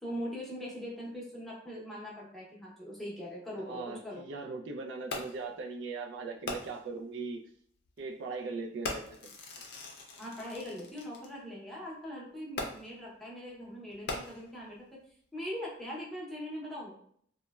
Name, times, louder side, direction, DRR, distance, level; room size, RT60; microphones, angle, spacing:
voice 1, 0.0-4.2 10.2-14.8 15.3-17.0, equal, ahead, -6 dB, 0.7 m, -41 dB
voice 2, 3.6-7.4 8.0-9.3, right 4 dB, 70° right, 3 dB, 0.3 m, -39 dB
Fireworks, 5.1-5.5 6.5-7.0 7.8-8.0 8.8-11.3 12.6-13.1 13.9-14.7 15.4-15.5, left 2 dB, 60° left, 0.5 m, -40 dB
3.0 x 2.1 x 2.2 m, 0.62 s
head